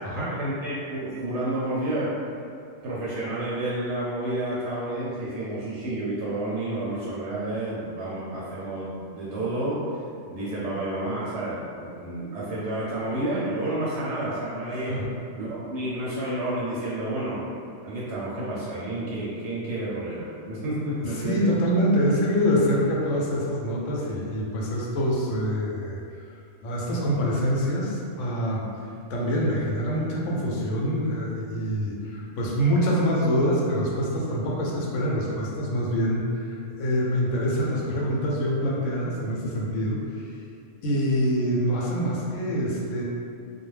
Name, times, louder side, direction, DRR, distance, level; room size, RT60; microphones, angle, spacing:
voice 1, 0.2-2.1 2.8-10.0 10.3-14.9 15.3-17.4 17.8-21.5, right 1 dB, 70° right, -8 dB, 0.8 m, -30 dB
voice 2, 21.1-26.0 26.6-28.7 29.1-40.3 40.8-43.0, equal, 75° left, -4 dB, 0.9 m, -25 dB
2.4 x 2.0 x 3.1 m, 2.4 s
omnidirectional pair, 1.3 m